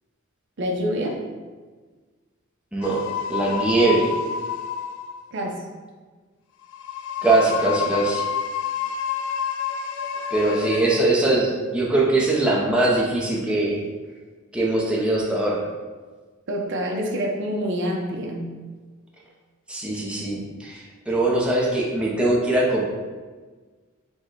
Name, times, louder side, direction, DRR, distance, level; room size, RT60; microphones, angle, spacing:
voice 1, 0.6-1.2 5.3-5.6 16.5-18.5, equal, 60° right, 1 dB, 0.7 m, -26 dB
voice 2, 2.7-3.0 3.3-4.1 7.2-8.2 10.3-13.8 14.5-15.6 19.7-22.8, right 2 dB, 5° right, -4 dB, 0.6 m, -21 dB
sound 1, 2.8-5.3 6.6-11.0, left 8 dB, 65° left, 0.3 m, -29 dB
4.4 x 2.2 x 4.5 m, 1.4 s
head